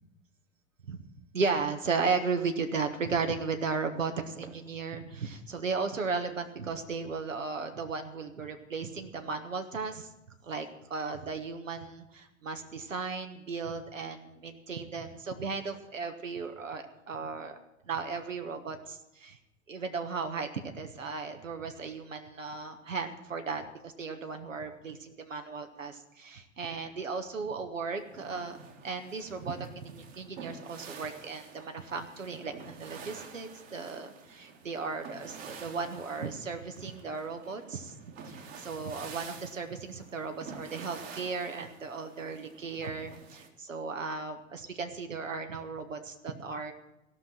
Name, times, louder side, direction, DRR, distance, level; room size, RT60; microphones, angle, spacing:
voice 1, 1.3-10.1 10.4-17.6 17.8-19.4 19.7-28.6 28.8-37.9 38.2-46.7, right 4 dB, 75° right, 6 dB, 1.2 m, -35 dB
sound 1, 28.0-43.5, right 5 dB, 50° right, 1.9 m, -49 dB
16.0 x 6.0 x 8.9 m, 0.91 s
figure-of-eight pair, 90°, 39 cm